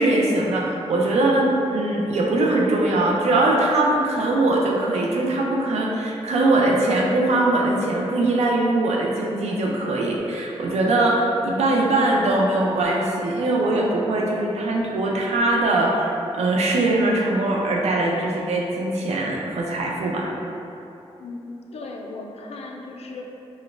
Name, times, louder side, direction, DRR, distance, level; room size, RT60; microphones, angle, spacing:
voice 1, 0.0-20.3, right 2 dB, 90° right, -2 dB, 0.5 m, -21 dB
voice 2, 21.7-23.2, left 3 dB, 70° left, 0 dB, 0.4 m, -36 dB
4.9 x 2.1 x 2.5 m, 2.8 s
cardioid pair, 85°, 11 cm